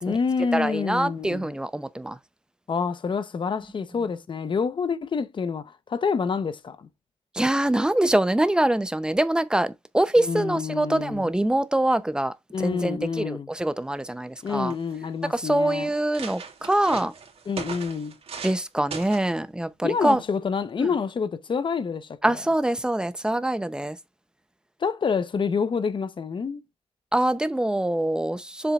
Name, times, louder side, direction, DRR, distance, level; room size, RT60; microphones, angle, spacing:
voice 1, 0.0-1.5 2.7-6.9 10.2-11.3 12.5-13.5 14.4-15.9 17.5-18.1 19.8-22.2 24.8-26.6, left 5 dB, 45° left, 0.9 m, -27 dB
voice 2, 0.5-2.2 7.3-14.7 15.3-17.1 18.4-20.2 22.2-24.0 27.1-28.7, right 1 dB, 5° right, 0.7 m, -24 dB
sound 1, 14.0-14.1 14.4-15.0 15.6-15.7 15.9-18.6 18.9-19.3 20.1-20.4, right 5 dB, 60° right, 2.3 m, -38 dB
7.2 x 7.1 x 2.4 m
wide cardioid pair, 120°, 11 cm